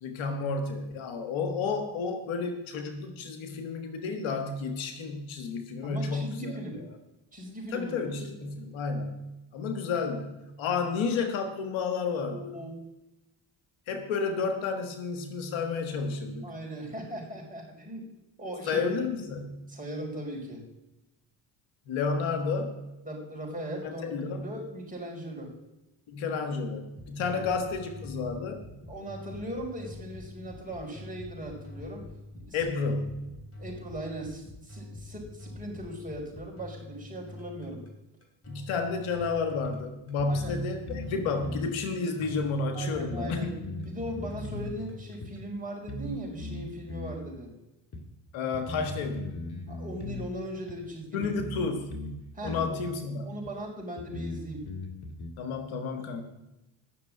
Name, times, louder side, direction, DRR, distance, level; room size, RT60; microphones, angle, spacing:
voice 1, 0.0-6.9 7.7-12.4 13.9-16.4 18.7-19.7 21.9-22.9 23.8-24.5 26.1-28.6 32.5-33.3 38.5-43.5 48.3-49.5 51.1-52.0 52.4-53.3 55.4-56.2, left 4 dB, 70° left, 6 dB, 1.6 m, -31 dB
voice 2, 5.8-6.8 7.3-7.9 12.3-12.7 16.4-18.1 18.4-18.9 19.7-20.6 23.0-25.5 27.2-27.4 28.9-32.1 32.4-32.6 33.6-37.8 40.3-40.5 42.7-47.5 49.7-51.2 52.3-52.8 53.2-54.7, right 1 dB, 15° right, -2 dB, 5.1 m, -39 dB
sound 1, 26.9-45.5, left 2 dB, 30° left, 3.4 m, -46 dB
sound 2, 39.2-39.3 39.6-39.7 40.2-41.1 41.4-41.7 42.4-42.5 42.9-44.7 45.2-45.3 45.9-46.1 46.4-47.2 47.9-48.0 48.5-50.3 50.7-50.8 51.2-52.2 52.4-52.7 53.4-53.5 54.0-55.3, left 1 dB, 50° left, 2.3 m, -38 dB
9.6 x 6.6 x 8.5 m, 0.96 s
supercardioid pair, 60°, 48 cm